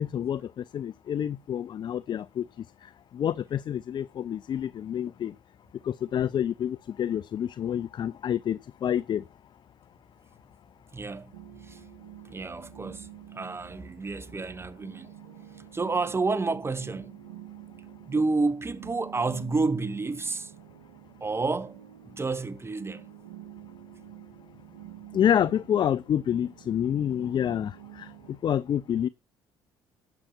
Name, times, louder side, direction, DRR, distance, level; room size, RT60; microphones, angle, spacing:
voice 1, 0.0-2.5 3.1-5.3 5.8-9.2 25.1-28.1 28.4-29.1, left 9 dB, 40° left, 0.5 m, -28 dB
voice 2, 10.9-11.8 12.3-15.1 15.7-17.2 18.1-20.5 21.2-23.1, right 3 dB, 20° right, 1.4 m, -30 dB
sound 1, 11.3-28.4, right 12 dB, 75° right, 1.6 m, -48 dB
10.5 x 7.6 x 5.9 m
figure-of-eight pair, 50°, 12 cm